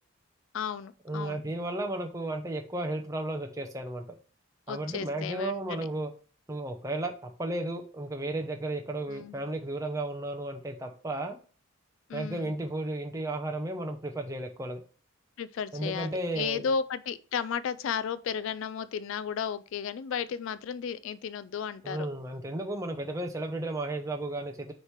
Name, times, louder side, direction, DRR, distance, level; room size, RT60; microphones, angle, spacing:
voice 1, 0.5-1.4 4.7-5.9 9.1-9.4 12.1-12.5 15.4-22.1, left 7 dB, 65° left, 0.3 m, -34 dB
voice 2, 1.0-4.1 4.7-6.1 6.5-11.4 12.1-14.8 15.7-16.7 21.8-24.7, right 1 dB, 15° right, 0.6 m, -34 dB
6.5 x 3.2 x 5.6 m
head